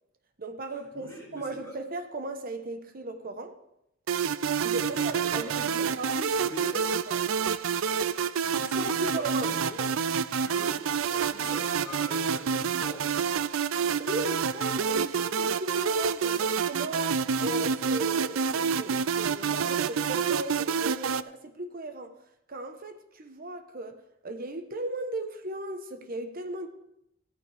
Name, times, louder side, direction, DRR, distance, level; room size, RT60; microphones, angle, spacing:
voice 1, 0.4-3.6 4.6-7.2 8.5-9.5 14.0-22.1 22.5-26.7, right 2 dB, 45° right, 1.0 m, -37 dB
voice 2, 0.9-1.8 4.8-6.0 6.3-6.8 8.4-9.9 10.4-13.1, left 1 dB, 15° left, 5.7 m, -43 dB
sound 1, 4.1-21.2, right 6 dB, 70° right, 0.4 m, -28 dB
15.0 x 14.0 x 3.4 m
head